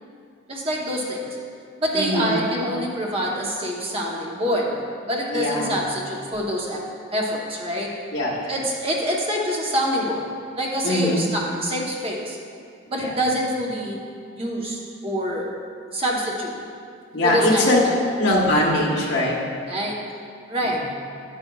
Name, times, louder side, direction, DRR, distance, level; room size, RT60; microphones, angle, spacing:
voice 1, 0.5-1.3 1.8-4.8 5.1-6.8 7.1-7.9 8.5-10.3 10.6-12.4 12.9-14.0 14.4-15.5 15.9-16.6 17.2-17.9 19.7-20.0 20.5-20.8, equal, 25° right, -2 dB, 0.9 m, -26 dB
voice 2, 1.9-2.4 5.3-5.8 8.1-8.5 10.8-11.3 12.9-13.1 17.1-17.8 18.2-19.4 20.6-20.8, left 1 dB, 60° left, -3 dB, 1.4 m, -22 dB
10.5 x 9.2 x 2.3 m, 2.3 s
head